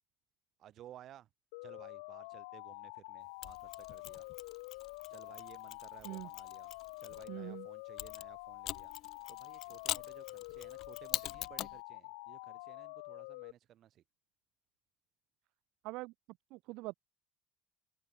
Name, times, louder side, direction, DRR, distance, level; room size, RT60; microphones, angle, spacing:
voice 1, 0.6-1.3 1.6-4.3 5.1-8.9 9.3-14.0, right 12 dB, 55° right, 5.4 m, -57 dB
sound 1, 1.5-13.5, left 28 dB, 90° left, 0.9 m, -48 dB
Mechanisms, 3.4-7.3 8.0-11.8, left 14 dB, 65° left, 1.1 m, -43 dB
voice 2, 7.3-7.7 15.8-16.1 16.5-16.9, right 22 dB, 75° right, 0.9 m, -43 dB
open air
supercardioid pair, 90°, 0 cm